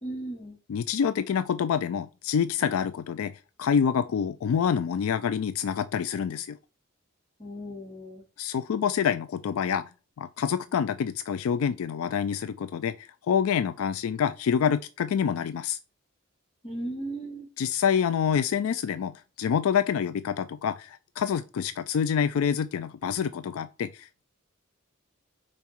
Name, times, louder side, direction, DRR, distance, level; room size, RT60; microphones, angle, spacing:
voice 1, 0.0-0.6 7.4-8.2 16.6-17.5, right 1 dB, 30° left, 2.9 m, -36 dB
voice 2, 0.7-3.3 3.6-6.6 8.4-9.9 10.2-15.8 17.6-24.2, left 7 dB, 75° left, 0.3 m, -27 dB
5.7 x 4.1 x 4.5 m
head